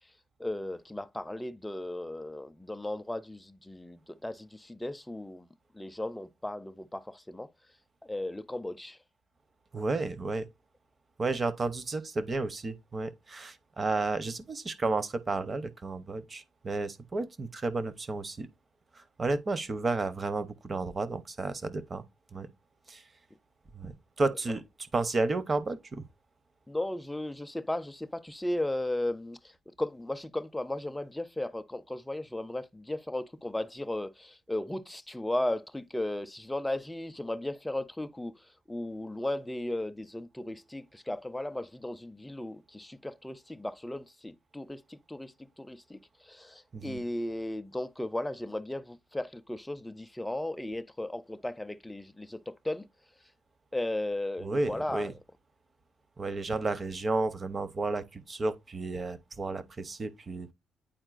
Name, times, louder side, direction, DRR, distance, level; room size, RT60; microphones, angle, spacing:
voice 1, 0.4-5.5 5.7-7.5 8.0-9.0 26.7-52.9 53.7-55.1, left 1 dB, 10° left, 0.5 m, -36 dB
voice 2, 9.7-10.5 11.2-18.5 18.9-22.0 22.3-22.5 22.9-23.0 23.7-24.6 24.9-26.1 46.7-47.0 54.4-55.1 56.2-60.5, right 3 dB, 30° right, 0.7 m, -32 dB
8.9 x 4.3 x 2.4 m
cardioid pair, 90°, 0 cm